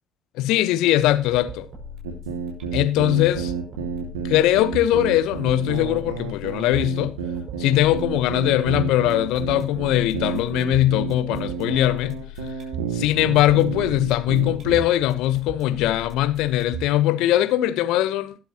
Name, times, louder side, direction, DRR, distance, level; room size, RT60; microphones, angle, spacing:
voice 1, 0.4-1.7 2.7-3.5 4.2-7.1 7.6-12.2 12.9-18.4, left 14 dB, 65° left, 1.1 m, -21 dB
sound 1, 1.0-17.0, right 2 dB, 50° right, 6.4 m, -39 dB
sound 2, 2.0-14.8, right 6 dB, 80° right, 2.1 m, -30 dB
21.0 x 7.7 x 3.0 m
hypercardioid pair, 55°, 0 cm